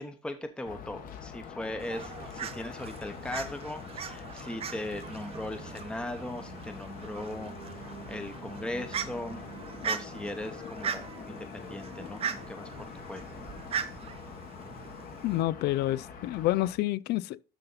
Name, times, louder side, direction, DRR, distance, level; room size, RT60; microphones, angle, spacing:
voice 1, 0.0-7.7 8.1-9.4 9.8-12.7 13.1-13.3, left 1 dB, 5° left, 0.8 m, -39 dB
sound 1, 0.6-16.7, left 7 dB, 55° left, 1.5 m, -45 dB
Fowl, 1.8-15.4, right 7 dB, 35° right, 0.7 m, -40 dB
sound 2, 6.7-12.7 13.2-13.3 13.7-13.9, right 10 dB, 60° right, 0.9 m, -52 dB
voice 2, 15.2-17.4, left 15 dB, 70° left, 0.4 m, -28 dB
12.5 x 4.1 x 4.0 m
cardioid pair, 150°, 18 cm